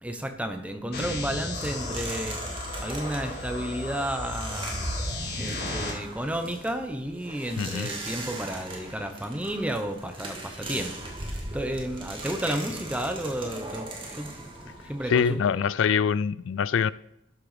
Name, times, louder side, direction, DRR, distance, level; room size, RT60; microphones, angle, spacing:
voice 1, 0.0-2.4 2.8-4.7 5.4-10.9 11.2-14.3 14.6-15.6, right 1 dB, 5° right, 1.0 m, -32 dB
sound 1, 0.9-5.9, left 2 dB, 50° left, 3.1 m, -34 dB
sound 2, 1.0-16.0, right 2 dB, 25° right, 2.2 m, -39 dB
voice 2, 7.6-7.9 15.1-16.9, left 7 dB, 75° left, 0.3 m, -24 dB
13.0 x 6.9 x 5.1 m
head